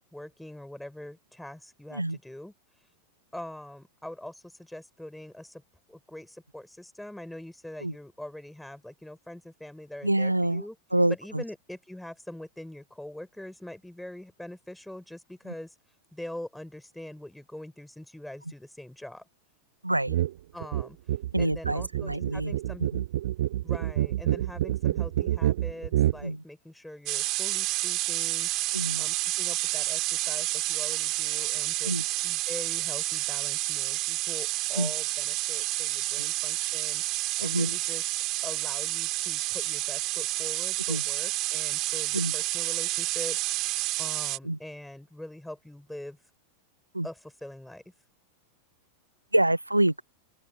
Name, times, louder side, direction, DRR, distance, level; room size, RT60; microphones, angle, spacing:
voice 1, 0.1-2.5 3.3-5.6 5.9-10.7 11.1-15.7 16.1-19.3 20.5-21.0 21.4-22.8 23.6-28.5 29.0-31.9 32.2-38.0 38.4-46.2 47.0-47.8, left 1 dB, 5° left, 7.0 m, -43 dB
voice 2, 10.0-10.6 10.9-11.4 19.8-20.2 21.3-22.5 22.9-23.0 26.2-26.4 28.7-29.0 31.8-32.0 34.8-34.9 36.2-36.3 37.4-37.8 40.9-41.0 42.1-42.3 44.4-44.6 46.9-47.1 49.3-50.0, right 1 dB, 85° right, 2.0 m, -26 dB
sound 1, 20.1-20.3 20.6-26.2, right 13 dB, 55° right, 7.4 m, -27 dB
sound 2, 27.1-44.4, right 19 dB, 40° right, 3.9 m, -29 dB
open air
figure-of-eight pair, 90°, 0 cm